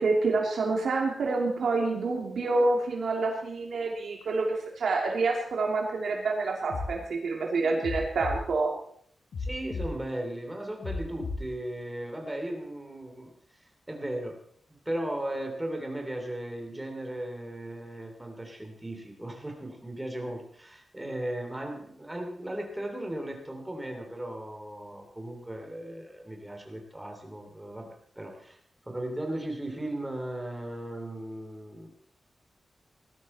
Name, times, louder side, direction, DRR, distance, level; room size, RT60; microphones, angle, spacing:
voice 1, 0.0-8.7, right 3 dB, 85° right, 0 dB, 2.8 m, -27 dB
sound 1, 6.7-6.9 7.8-8.4 9.3-9.9 10.8-11.4, left 3 dB, 75° left, 6.3 m, -33 dB
voice 2, 9.4-14.4 14.7-28.6 28.9-31.9, right 1 dB, 10° right, 3 dB, 2.9 m, -37 dB
19.0 x 12.5 x 4.3 m, 0.63 s
wide cardioid pair, 180°, 0 cm